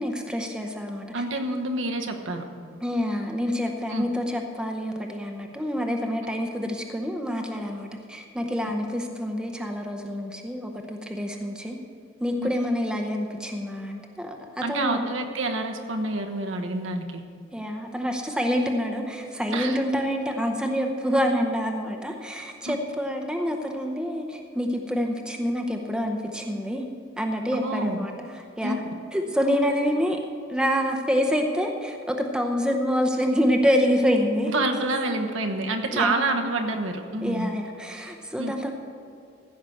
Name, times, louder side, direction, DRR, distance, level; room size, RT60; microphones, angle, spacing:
voice 1, 0.0-1.2 2.8-11.8 12.2-15.1 17.5-26.9 27.2-28.8 29.1-30.2 30.5-34.5 35.9-36.1 37.2-38.7, equal, 5° right, 3 dB, 0.7 m, -27 dB
voice 2, 1.1-2.5 3.9-4.0 14.6-17.2 19.5-19.8 22.7-22.8 27.5-28.0 28.6-28.8 34.5-37.5 38.4-38.5, right 2 dB, 75° right, 4 dB, 1.1 m, -28 dB
15.0 x 5.7 x 7.8 m, 2.5 s
head